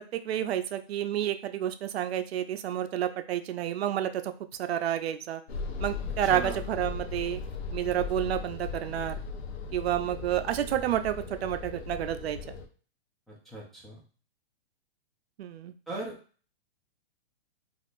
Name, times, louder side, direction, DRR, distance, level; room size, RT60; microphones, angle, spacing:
voice 1, 0.0-4.3 4.6-5.4 5.8-7.4 7.7-9.1 9.7-12.4 15.4-15.7, right 11 dB, 75° right, 9 dB, 0.5 m, -30 dB
sound 1, 5.5-12.7, left 5 dB, 80° left, 0.7 m, -37 dB
voice 2, 6.2-6.6 13.3-14.0 15.9-16.1, right 2 dB, ahead, -6 dB, 0.5 m, -38 dB
3.5 x 2.4 x 2.5 m, 0.40 s
hypercardioid pair, 145°, 31 cm